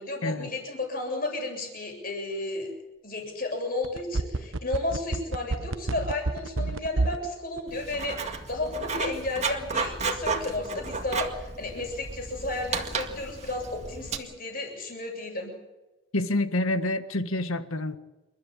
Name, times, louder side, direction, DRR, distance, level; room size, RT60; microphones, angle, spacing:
voice 1, 0.0-2.7 3.0-15.5, left 2 dB, 45° left, 2 dB, 7.6 m, -33 dB
sound 1, 3.8-7.3 7.6-7.7, right 2 dB, 70° right, 1.0 m, -28 dB
Writing, 7.7-14.2, right 4 dB, 30° right, 2.1 m, -33 dB
voice 2, 16.1-18.0, left 1 dB, 90° left, 10 dB, 1.7 m, -27 dB
29.0 x 13.5 x 9.0 m, 1.1 s
head